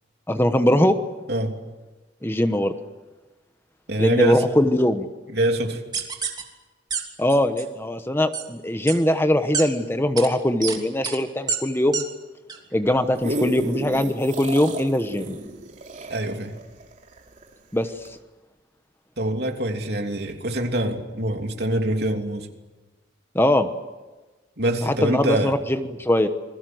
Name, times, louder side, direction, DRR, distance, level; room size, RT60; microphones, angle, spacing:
voice 1, 0.3-1.0 2.2-2.7 4.0-5.1 7.2-12.0 12.7-15.4 17.7-17.9 23.3-23.7 24.9-26.3, left 1 dB, 15° left, 8 dB, 1.1 m, -21 dB
voice 2, 3.9-4.4 5.3-5.8 16.1-16.5 19.2-22.5 24.6-25.5, right 1 dB, 60° right, 3 dB, 3.2 m, -24 dB
sound 1, 5.9-6.4 6.9-7.0 7.3-7.6 8.3-8.4 8.9-9.0 9.5-9.6 10.2-10.3 10.6-10.8 11.0-11.2 11.5-11.6 11.9-12.0 12.5-12.6, right 6 dB, 25° right, 3.1 m, -27 dB
sound 2, 12.9-17.5 18.1-18.2, right 1 dB, 45° right, 3.5 m, -31 dB
28.5 x 21.5 x 7.9 m, 1.2 s
head